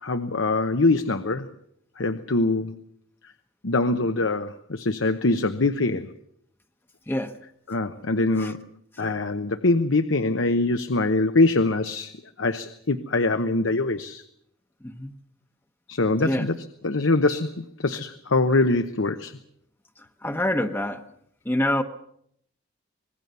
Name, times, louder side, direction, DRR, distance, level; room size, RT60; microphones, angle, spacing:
voice 1, 0.0-1.5 2.0-2.8 3.2-3.3 3.6-6.1 7.7-8.7 9.0-14.2 15.9-16.5 16.8-19.4, left 2 dB, 75° left, 9 dB, 1.0 m, -23 dB
voice 2, 20.2-21.0 21.4-21.8, left 1 dB, 10° left, 6 dB, 1.0 m, -26 dB
25.5 x 20.5 x 6.9 m, 0.71 s
head